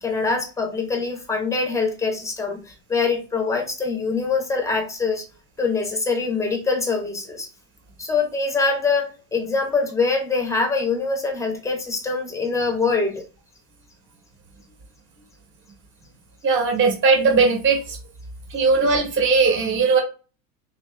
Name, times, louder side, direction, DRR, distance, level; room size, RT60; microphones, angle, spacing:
voice 1, 0.0-5.3 5.6-7.5 8.0-13.3, left 4 dB, 5° left, 3 dB, 0.9 m, -24 dB
voice 2, 16.4-18.0 18.5-20.0, right 4 dB, 25° right, 1 dB, 1.4 m, -18 dB
3.1 x 3.0 x 3.3 m, 0.33 s
supercardioid pair, 130°, 43 cm